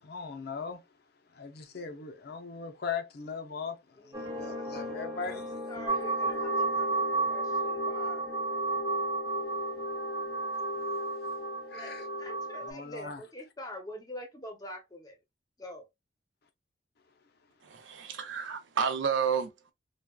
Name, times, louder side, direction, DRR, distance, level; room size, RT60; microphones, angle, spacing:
voice 1, 0.0-0.8 1.3-5.6 11.7-12.1 12.6-13.2, left 5 dB, 55° left, 0.5 m, -39 dB
voice 2, 4.0-5.0 5.2-8.2 11.7-15.2 15.6-15.9, equal, 20° left, 0.7 m, -45 dB
sound 1, 4.1-12.7, left 1 dB, 20° right, 1.0 m, -42 dB
sound 2, 5.9-12.7, right 2 dB, 90° left, 0.8 m, -32 dB
voice 3, 17.6-19.7, right 6 dB, 80° right, 0.6 m, -31 dB
3.4 x 2.3 x 2.3 m
head